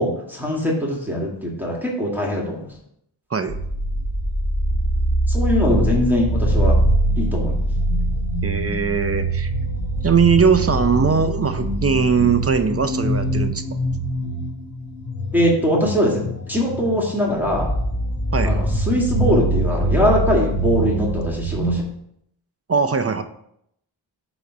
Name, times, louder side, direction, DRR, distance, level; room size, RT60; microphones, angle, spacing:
voice 1, 0.0-2.6 5.3-6.8 7.2-7.6 15.3-16.2 16.5-17.7 18.5-21.8, left 1 dB, 5° right, -4 dB, 1.9 m, -21 dB
sound 1, 3.5-21.8, right 1 dB, 40° left, 2.6 m, -23 dB
voice 2, 8.4-9.5 10.0-13.8 18.3-18.6 22.7-23.2, right 6 dB, 30° right, 8 dB, 0.6 m, -20 dB
8.3 x 3.1 x 5.0 m, 0.73 s
cardioid pair, 60°, 47 cm